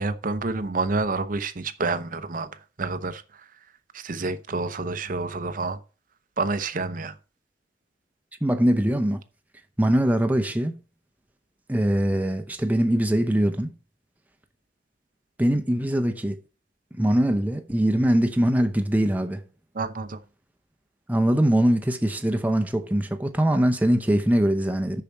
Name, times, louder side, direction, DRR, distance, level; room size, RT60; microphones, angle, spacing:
voice 1, 0.0-2.5 2.8-3.2 3.9-5.8 6.4-7.1 19.7-20.2, right 3 dB, 45° right, 0.7 m, -28 dB
voice 2, 8.4-9.2 9.8-10.8 11.7-13.7 15.4-16.4 16.9-19.4 21.1-25.0, right 1 dB, 10° right, 0.7 m, -22 dB
6.9 x 5.8 x 7.4 m
head